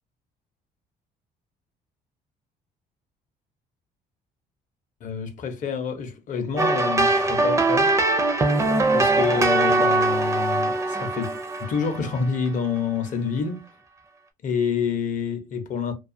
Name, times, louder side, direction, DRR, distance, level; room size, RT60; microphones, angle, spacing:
voice 1, 5.0-7.9 8.9-13.6 14.4-15.9, left 6 dB, 50° left, 0.6 m, -27 dB
sound 1, 6.6-12.5, right 2 dB, 20° right, 0.4 m, -22 dB
2.3 x 2.3 x 2.6 m
cardioid pair, 110°, 17 cm